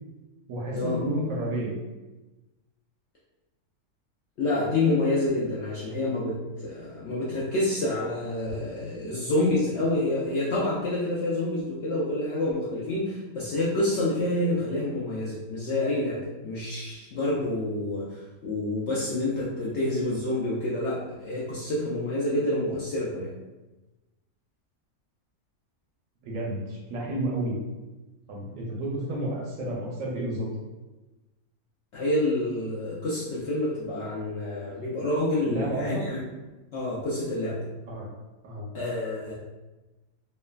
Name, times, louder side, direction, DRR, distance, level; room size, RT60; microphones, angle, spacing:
voice 1, 0.5-1.7 26.2-27.6 28.3-30.5 35.4-36.0 37.9-38.1 38.4-38.7, right 1 dB, 70° right, -3 dB, 0.9 m, -31 dB
voice 2, 4.4-23.3 31.9-36.2 36.7-37.6 38.7-39.3, left 2 dB, 65° left, -7 dB, 0.7 m, -28 dB
3.1 x 2.1 x 2.2 m, 1.1 s
omnidirectional pair, 1.6 m